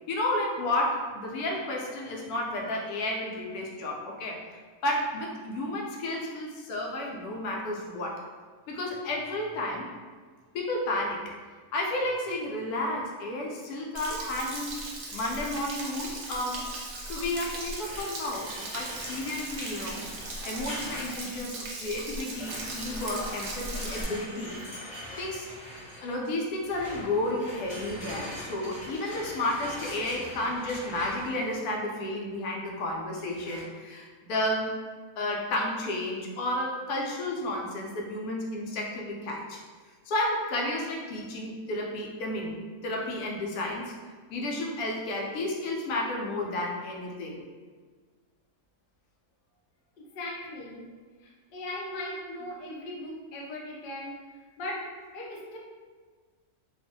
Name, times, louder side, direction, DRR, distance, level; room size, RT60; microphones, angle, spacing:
voice 1, 0.1-4.4 4.8-8.2 8.7-9.9 10.5-11.2 11.7-14.7 15.1-16.7 17.0-20.0 20.4-24.6 25.2-25.5 26.0-34.7 35.2-39.6 40.1-43.9 44.3-47.4, left 1 dB, 90° left, -1 dB, 1.1 m, -32 dB
Stream / Splash splatter / Trickle dribble, 13.9-24.0, right 2 dB, 65° right, 0.7 m, -38 dB
sound 1, 17.7-21.4 22.3-31.5 33.3-33.6, equal, 40° left, 0.8 m, -42 dB
voice 2, 50.0-50.9 51.2-54.2 54.6-55.6, left 1 dB, 70° left, -2 dB, 0.5 m, -38 dB
2.5 x 2.4 x 2.6 m, 1.5 s
omnidirectional pair, 1.5 m